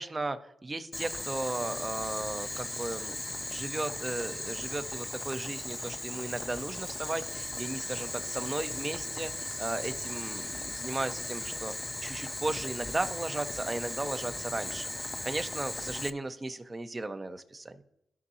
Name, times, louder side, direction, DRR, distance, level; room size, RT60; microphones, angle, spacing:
voice 1, 0.0-3.1 3.5-11.7 12.0-17.8, right 2 dB, 30° right, 8 dB, 1.0 m, -36 dB
Boiling, 0.9-16.1, left 2 dB, 20° left, 0.6 m, -37 dB
15.0 x 5.4 x 2.8 m, 0.81 s
supercardioid pair, 55°, 0 cm